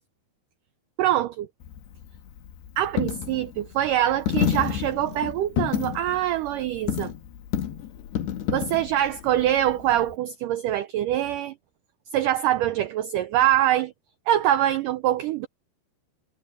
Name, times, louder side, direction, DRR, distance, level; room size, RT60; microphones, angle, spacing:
voice 1, 1.0-1.5 2.8-7.1 8.5-11.5 12.1-13.9 14.3-15.5, right 12 dB, 85° right, 1.9 m, -24 dB
Coin (dropping), 1.6-10.2, left 10 dB, 80° left, 3.6 m, -30 dB
omnidirectional pair, 4.7 m